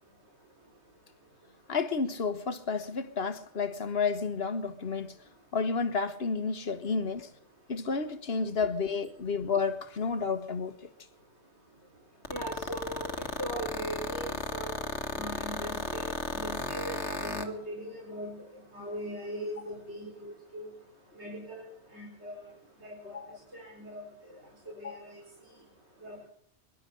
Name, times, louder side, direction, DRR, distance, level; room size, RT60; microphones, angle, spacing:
voice 1, 1.7-5.1 5.5-7.3 7.7-10.9 23.0-23.4 24.8-25.0, left 5 dB, 65° left, 1.6 m, -31 dB
sound 1, 12.2-17.5, left 3 dB, 85° left, 1.9 m, -33 dB
voice 2, 12.3-13.1 13.4-14.8 15.1-18.4 18.7-20.7 21.2-21.7 21.9-22.4 22.8-23.1 23.5-24.0 24.8-25.2 26.0-26.3, right 1 dB, 80° right, 4.6 m, -40 dB
23.5 x 11.5 x 5.3 m
omnidirectional pair, 1.1 m